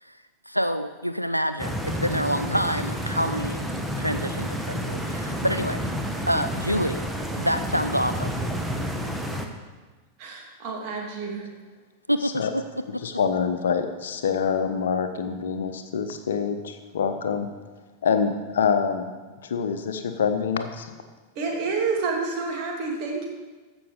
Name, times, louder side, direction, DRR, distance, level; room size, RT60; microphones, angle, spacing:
voice 1, 0.0-3.7 4.0-5.9 6.3-7.1 7.4-8.5 12.1-13.1, equal, 90° right, 10 dB, 0.4 m, -27 dB
Stream, 1.6-9.5, equal, 5° right, 1.1 m, -30 dB
voice 2, 10.2-11.5 21.3-23.3, right 4 dB, 40° right, -1 dB, 2.7 m, -29 dB
voice 3, 13.0-17.5 18.0-19.1 19.4-20.9, left 6 dB, 65° left, 8 dB, 0.9 m, -26 dB
15.0 x 6.1 x 5.1 m, 1.3 s
figure-of-eight pair, 90°, 0 cm